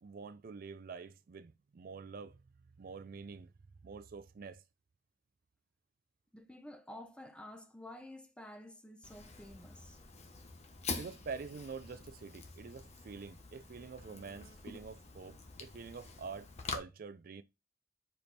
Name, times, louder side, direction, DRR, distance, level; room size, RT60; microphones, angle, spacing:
voice 1, 0.0-2.4 2.8-3.5 3.8-4.6 11.0-17.4, right 5 dB, 55° right, 0.4 m, -47 dB
voice 2, 6.3-10.0, left 1 dB, 5° left, 0.9 m, -51 dB
Fire, 9.0-16.8, left 4 dB, 40° left, 1.1 m, -46 dB
5.2 x 4.4 x 4.1 m
head